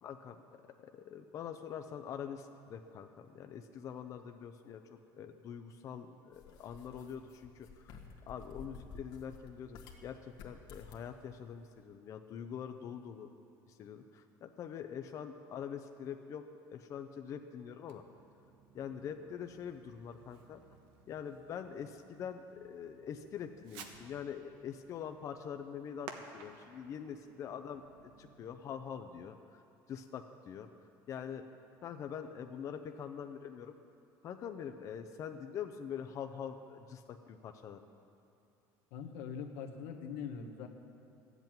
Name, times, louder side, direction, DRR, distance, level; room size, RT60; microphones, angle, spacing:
voice 1, 0.0-8.0 8.3-13.3 13.7-16.5 16.7-18.0 18.7-20.6 21.1-27.8 28.2-29.6 29.9-30.7 31.1-31.4 31.8-33.7 34.2-37.8, left 8 dB, 40° left, 6 dB, 0.6 m, -44 dB
sound 1, 6.3-10.0 10.3-11.1, left 5 dB, 75° left, 1.7 m, -52 dB
Fireworks, 17.8-28.5, right 5 dB, 80° right, 1.2 m, -56 dB
voice 2, 38.9-40.7, left 6 dB, 90° left, 3 dB, 1.3 m, -42 dB
13.5 x 8.1 x 9.1 m, 2.7 s
cardioid pair, 150°, 8 cm